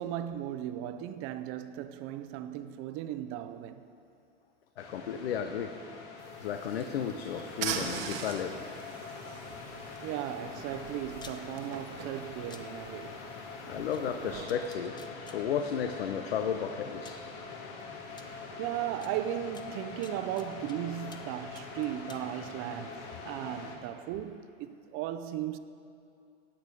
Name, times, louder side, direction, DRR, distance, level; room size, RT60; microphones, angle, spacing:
voice 1, 0.0-3.8 10.0-13.2 13.8-13.9 18.1-25.6, right 12 dB, 45° right, 0.7 m, -37 dB
voice 2, 4.8-5.7 6.4-8.6 13.7-17.2 22.4-22.5, left 8 dB, 90° left, 0.7 m, -34 dB
sound 1, 4.8-23.8, left 4 dB, 55° left, 2.0 m, -44 dB
sound 2, 6.2-14.4, right 8 dB, 70° right, 1.3 m, -42 dB
sound 3, 11.2-11.4 12.5-12.6 13.9-14.0 14.5-15.4 16.4-16.5 17.0-17.3 18.2-18.3 19.0-19.1 19.5-20.8 21.1-21.3 21.5-22.2, left 5 dB, 15° left, 0.7 m, -51 dB
15.5 x 8.9 x 4.8 m
hypercardioid pair, 115°, 30 cm